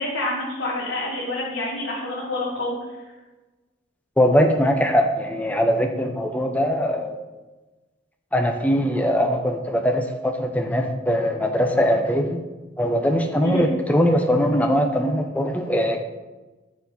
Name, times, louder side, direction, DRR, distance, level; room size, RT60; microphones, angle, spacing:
voice 1, 0.0-2.8 13.4-13.7, left 1 dB, 85° left, -6 dB, 1.6 m, -27 dB
voice 2, 4.2-7.2 8.3-12.4 12.8-16.0, equal, 10° left, 4 dB, 0.6 m, -21 dB
6.9 x 4.4 x 5.4 m, 1.2 s
head